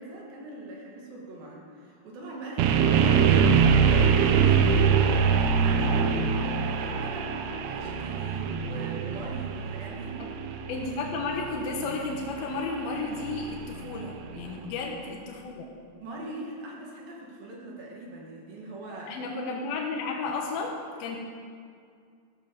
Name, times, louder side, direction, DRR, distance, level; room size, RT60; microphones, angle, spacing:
voice 1, 0.0-10.2 14.4-14.7 16.0-19.2, right 2 dB, 55° right, -2 dB, 3.4 m, -41 dB
sound 1, 2.6-14.5, right 6 dB, 80° right, 2.3 m, -24 dB
voice 2, 10.7-15.7 19.1-21.2, left 4 dB, 65° left, 0 dB, 2.6 m, -33 dB
14.5 x 13.5 x 5.3 m, 2.2 s
omnidirectional pair, 5.5 m